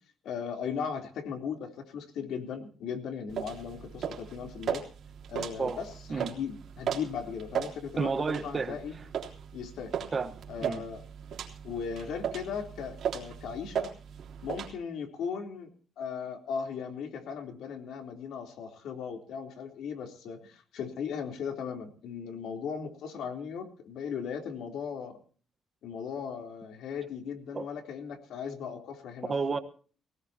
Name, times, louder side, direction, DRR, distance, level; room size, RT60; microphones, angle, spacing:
voice 1, 0.2-4.9 5.3-8.1 8.4-9.0 9.5-9.9 10.5-11.0 11.6-13.9 14.4-15.7 16.0-25.2 25.8-29.3, left 6 dB, 75° left, 3.6 m, -37 dB
sound 1, 3.3-14.7, right 8 dB, 55° right, 3.4 m, -37 dB
voice 2, 8.0-8.8 10.1-10.8 27.5-27.7 29.3-29.6, right 4 dB, 25° right, 1.2 m, -31 dB
21.5 x 18.0 x 2.9 m
cardioid pair, 175°, 0 cm